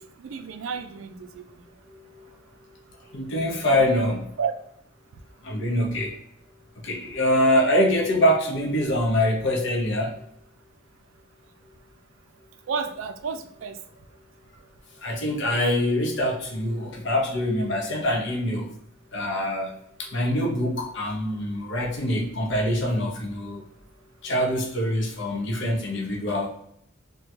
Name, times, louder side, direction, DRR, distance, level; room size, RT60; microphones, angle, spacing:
voice 1, 0.0-1.4 4.4-4.5 12.7-13.8, right 6 dB, 70° right, 8 dB, 0.4 m, -31 dB
voice 2, 1.9-2.3 3.1-4.3 5.4-6.1 6.8-10.1 15.0-18.7 19.1-23.6 24.2-26.5, left 1 dB, 60° left, 1 dB, 0.8 m, -24 dB
3.6 x 2.2 x 2.8 m, 0.73 s
head